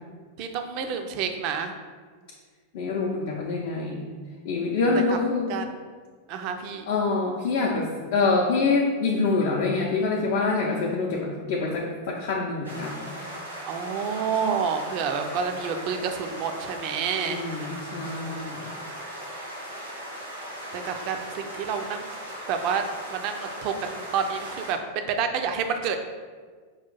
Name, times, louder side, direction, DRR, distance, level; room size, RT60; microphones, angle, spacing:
voice 1, 0.4-1.7 5.5-5.7 6.3-6.8 13.7-17.4 20.7-22.1 22.5-22.8 23.1-26.0, right 6 dB, 45° right, 6 dB, 0.4 m, -29 dB
voice 2, 2.7-4.1 4.4-5.5 6.9-13.1 17.3-18.6, left 3 dB, 50° left, -3 dB, 0.5 m, -26 dB
sound 1, 12.6-24.7, equal, 80° right, 1.3 m, -38 dB
5.6 x 2.4 x 3.8 m, 1.5 s
figure-of-eight pair, 90°, 0 cm